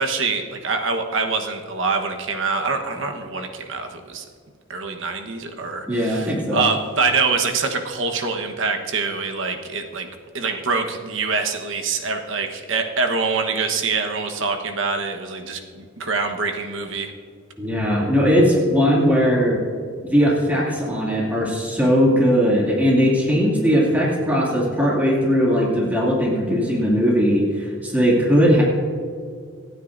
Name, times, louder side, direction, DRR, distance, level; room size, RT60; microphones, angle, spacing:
voice 1, 0.0-4.2 4.7-10.1 10.3-17.1, right 4 dB, 65° right, 4 dB, 1.2 m, -25 dB
voice 2, 5.9-6.7 17.6-19.6 20.0-28.6, equal, 10° right, -5 dB, 2.4 m, -19 dB
26.5 x 9.3 x 2.6 m, 2.2 s
head